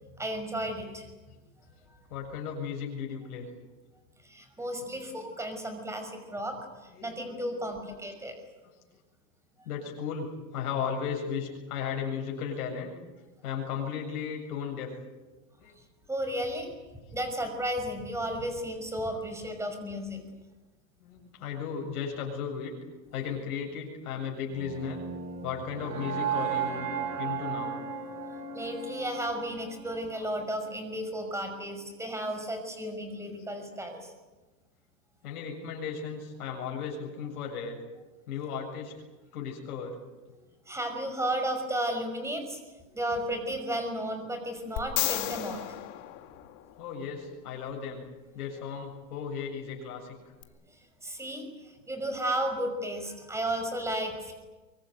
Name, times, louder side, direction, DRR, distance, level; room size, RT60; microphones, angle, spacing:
voice 1, 0.2-1.1 1.9-2.0 4.2-6.6 7.0-8.3 16.1-16.7 17.1-20.2 28.5-34.1 40.7-42.6 42.9-45.6 51.0-54.3, right 1 dB, 5° right, 6 dB, 5.7 m, -33 dB
voice 2, 2.1-3.5 4.8-5.2 6.9-8.1 8.6-8.7 9.6-13.0 13.4-14.9 15.6-15.7 19.1-19.4 21.0-22.7 23.1-25.0 25.4-26.9 27.2-27.8 30.0-30.3 33.3-33.5 35.2-37.8 38.3-38.9 39.3-40.0 46.8-48.0 48.3-50.3, left 7 dB, 65° left, 0 dB, 7.6 m, -36 dB
sound 1, 24.5-30.6, right 7 dB, 85° right, 6.5 m, -35 dB
sound 2, 44.8-47.0 50.4-50.5, left 17 dB, 40° left, 2.2 m, -33 dB
24.0 x 24.0 x 9.2 m, 1.2 s
supercardioid pair, 145°, 48 cm